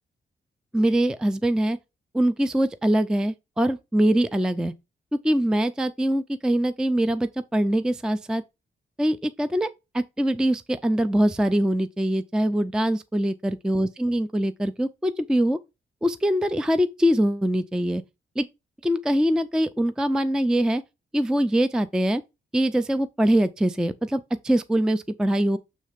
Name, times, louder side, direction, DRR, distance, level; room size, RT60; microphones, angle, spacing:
voice 1, 0.7-1.8 2.1-4.7 5.2-8.4 9.0-9.7 9.9-15.6 16.0-18.0 18.4-18.5 18.8-20.8 21.1-22.2 22.5-25.6, right 1 dB, 5° right, 0.3 m, -23 dB
7.4 x 3.2 x 5.0 m
wide cardioid pair, 140°, 19 cm